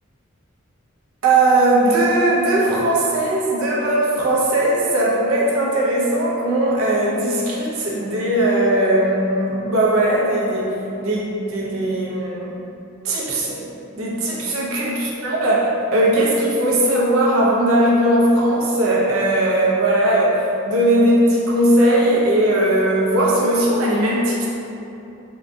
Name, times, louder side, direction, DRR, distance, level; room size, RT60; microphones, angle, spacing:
voice 1, 1.2-12.6 13.0-13.6 13.9-24.5, right 1 dB, 75° right, -4 dB, 0.6 m, -18 dB
3.8 x 2.6 x 2.2 m, 2.8 s
head